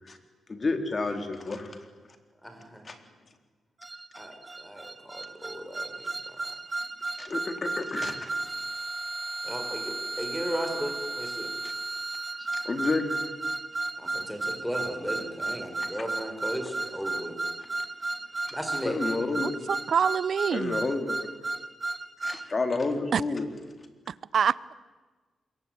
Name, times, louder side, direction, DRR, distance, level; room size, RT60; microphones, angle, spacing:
voice 1, 0.5-1.8 2.8-3.0 7.2-8.3 11.6-11.7 12.4-13.1 18.8-19.5 20.5-21.2 22.2-23.5, left 3 dB, 35° left, 7 dB, 3.9 m, -30 dB
voice 2, 2.4-2.9 4.2-6.4 9.4-11.5 14.0-17.4 18.5-19.0, equal, 5° left, 6 dB, 5.3 m, -36 dB
sound 1, 3.8-22.5, right 2 dB, 30° right, 1.9 m, -34 dB
voice 3, 19.4-20.8 23.1-23.2 24.3-24.7, right 7 dB, 65° right, 20 dB, 0.7 m, -26 dB
27.0 x 22.5 x 9.4 m, 1.4 s
cardioid pair, 90°, 0 cm